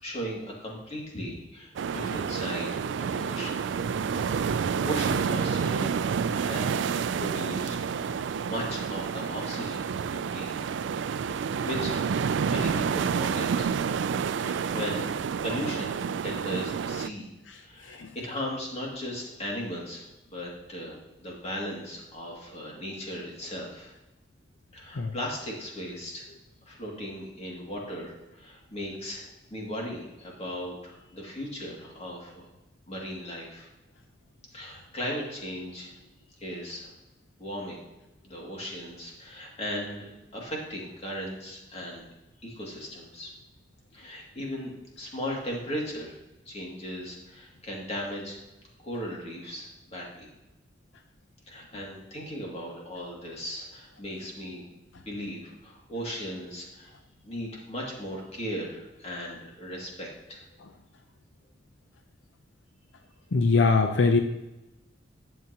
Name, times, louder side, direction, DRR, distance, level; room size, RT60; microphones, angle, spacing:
voice 1, 0.0-3.7 4.4-5.9 6.3-10.5 11.3-12.0 12.5-13.7 14.4-17.3 17.6-23.9 24.7-26.3 26.6-32.5 32.9-33.7 34.5-35.9 36.4-36.9 37.4-37.8 38.2-42.1 42.4-43.3 43.9-44.7 45.0-46.2 46.5-48.4 48.8-50.3 51.5-54.7 55.0-56.9 57.2-60.4, equal, 35° left, -2 dB, 2.3 m, -37 dB
sound 1, 1.8-17.1, right 6 dB, 75° right, 0.3 m, -29 dB
voice 2, 63.3-64.2, left 4 dB, 80° left, 6 dB, 0.6 m, -22 dB
11.0 x 7.7 x 2.9 m, 0.99 s
head